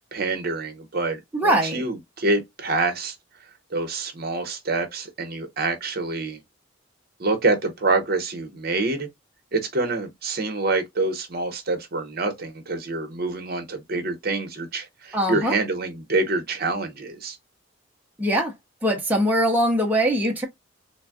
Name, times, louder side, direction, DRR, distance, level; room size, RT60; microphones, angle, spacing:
voice 1, 0.1-3.1 3.7-6.4 7.2-9.1 9.5-17.4, right 3 dB, 50° right, 0.8 m, -26 dB
voice 2, 1.3-1.8 15.1-15.6 18.2-18.5 18.8-20.5, equal, 10° right, 0.6 m, -22 dB
3.4 x 2.2 x 2.2 m
head